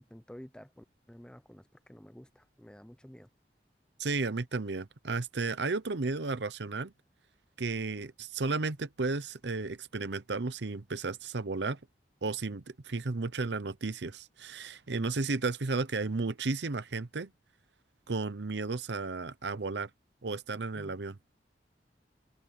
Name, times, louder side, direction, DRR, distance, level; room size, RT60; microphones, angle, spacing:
voice 1, 0.0-1.6 1.9-3.3 20.7-21.0, equal, 5° left, 0.8 m, -51 dB
voice 2, 4.0-6.9 7.6-11.8 12.2-17.3 18.1-19.9 20.2-21.2, right 3 dB, 75° right, 0.9 m, -33 dB
head